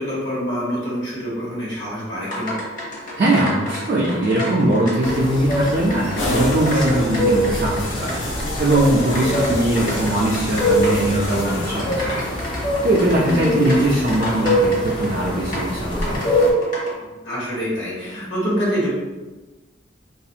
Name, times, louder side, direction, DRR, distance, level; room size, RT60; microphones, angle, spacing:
voice 1, 0.0-2.6 13.2-13.8 17.0-19.0, equal, 70° left, -7 dB, 1.0 m, -26 dB
sound 1, 2.2-16.9, left 1 dB, 45° left, 0.8 m, -32 dB
voice 2, 3.2-8.2 8.6-12.2 12.8-16.3, right 1 dB, 50° right, -5 dB, 0.4 m, -20 dB
sound 2, 5.0-16.5, equal, 25° left, 0.4 m, -24 dB
sound 3, 6.2-12.2, left 1 dB, 90° left, 0.6 m, -29 dB
2.4 x 2.3 x 2.7 m, 1.2 s
head